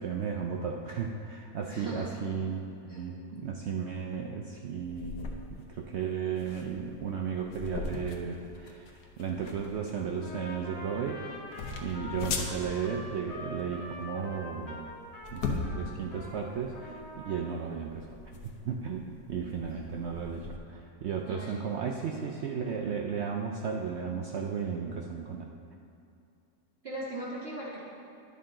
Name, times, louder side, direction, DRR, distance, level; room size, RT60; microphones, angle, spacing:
voice 1, 0.0-5.2 5.5-11.2 11.5-14.9 15.3-18.1 18.4-25.5, right 6 dB, 70° right, 1 dB, 0.6 m, -35 dB
voice 2, 1.7-2.0 2.9-3.0 3.3-3.4 12.0-12.3 19.7-19.8 21.3-22.0 26.8-27.8, right 1 dB, 45° right, -7 dB, 1.3 m, -40 dB
sound 1, 4.8-20.6, left 4 dB, 85° left, 1.3 m, -40 dB
Trumpet, 10.2-16.4 16.7-17.5, left 1 dB, 25° left, 1.2 m, -44 dB
10.5 x 6.8 x 3.8 m, 2.6 s
omnidirectional pair, 1.6 m